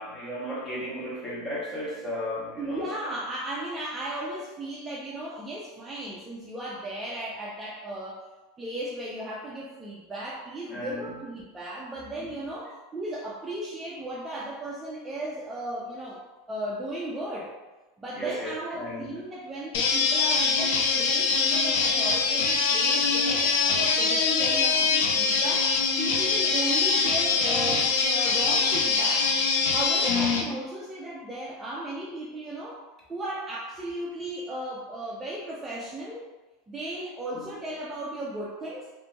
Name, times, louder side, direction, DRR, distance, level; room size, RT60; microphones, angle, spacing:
voice 1, 0.0-2.9 10.7-11.1 18.2-19.1, equal, 15° left, -6 dB, 0.8 m, -34 dB
voice 2, 2.6-8.2 8.6-16.2 16.5-17.5 18.0-25.7 26.0-29.3 29.7-32.8 33.1-36.3 36.7-38.9, right 1 dB, 15° right, -5 dB, 0.3 m, -36 dB
sound 1, 19.7-30.4, left 4 dB, 75° left, 0.4 m, -23 dB
2.8 x 2.5 x 2.2 m, 1.1 s
supercardioid pair, 150°, 0 cm